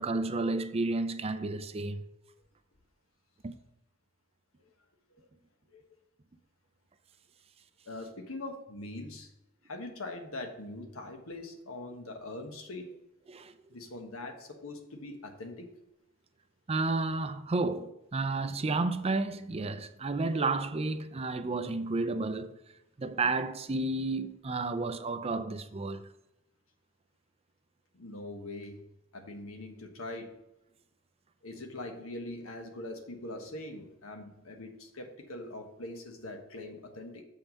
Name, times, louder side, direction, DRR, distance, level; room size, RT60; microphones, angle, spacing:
voice 1, 0.0-2.1 3.4-3.5 13.3-13.5 16.7-22.5 23.0-26.1, right 3 dB, 30° right, 0.5 m, -31 dB
voice 2, 7.8-9.3 9.6-12.9 13.7-15.7 27.9-28.8 29.1-30.3 31.4-37.2, left 2 dB, 85° left, 1.3 m, -42 dB
7.3 x 5.5 x 5.3 m
head